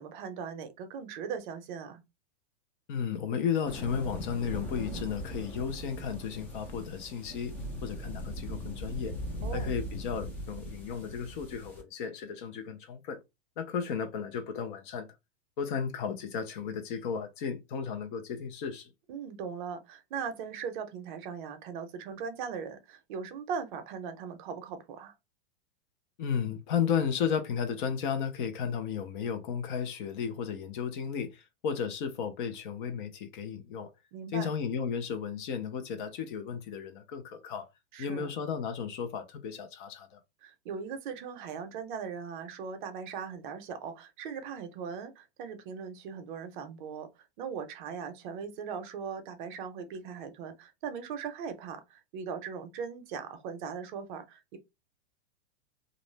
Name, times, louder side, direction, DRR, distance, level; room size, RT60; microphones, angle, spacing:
voice 1, 0.0-2.0 9.4-9.7 19.1-25.1 34.1-34.5 37.9-38.3 40.4-47.1 47.4-54.6, right 6 dB, 50° right, 0.6 m, -39 dB
voice 2, 2.9-7.6 7.8-9.1 9.5-13.2 13.6-15.1 15.6-18.9 26.2-33.9 34.3-37.7 38.0-40.2, left 7 dB, 50° left, 0.6 m, -34 dB
sound 1, 3.7-11.8, equal, 5° left, 0.3 m, -40 dB
2.5 x 2.0 x 3.1 m
hypercardioid pair, 140°, 33 cm